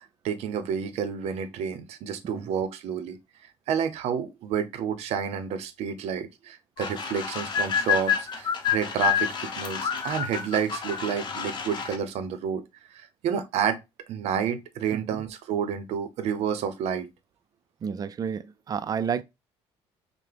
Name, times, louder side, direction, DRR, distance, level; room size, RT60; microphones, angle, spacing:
voice 1, 0.2-3.2 3.7-12.6 12.9-13.8 14.1-17.1, right 7 dB, 70° right, 0.7 m, -30 dB
sound 1, 6.8-12.0, left 8 dB, 45° left, 0.8 m, -28 dB
voice 2, 14.9-15.2 17.8-19.2, right 7 dB, 35° right, 0.4 m, -31 dB
5.7 x 2.2 x 3.4 m
cardioid pair, 100°, 11 cm